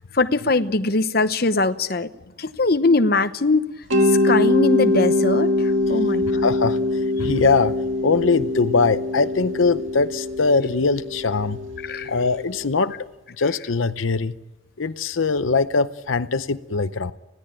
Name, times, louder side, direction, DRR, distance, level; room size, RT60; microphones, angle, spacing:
voice 1, 0.1-2.1 2.4-3.7 4.1-6.5 11.8-12.1, left 3 dB, 50° left, 10 dB, 0.9 m, -21 dB
Mallet percussion, 3.9-12.7, left 2 dB, 80° right, 1.8 m, -23 dB
voice 2, 6.4-7.7 8.0-11.6 12.1-12.9 13.4-14.3 14.8-17.1, left 4 dB, 80° left, 11 dB, 0.7 m, -21 dB
20.5 x 16.5 x 8.9 m, 1.0 s
head